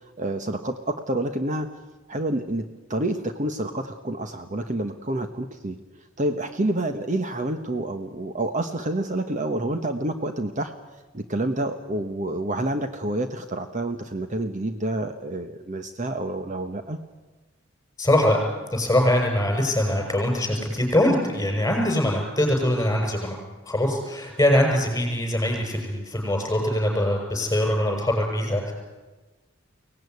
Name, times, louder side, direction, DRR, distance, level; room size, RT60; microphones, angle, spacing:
voice 1, 0.2-1.7 2.1-2.6 2.9-5.8 6.2-10.7 11.1-17.0, right 1 dB, 40° right, 7 dB, 1.2 m, -28 dB
voice 2, 18.0-18.4 18.7-23.4 23.7-28.7, left 1 dB, 15° left, 2 dB, 6.9 m, -22 dB
24.0 x 18.0 x 9.6 m, 1.2 s
head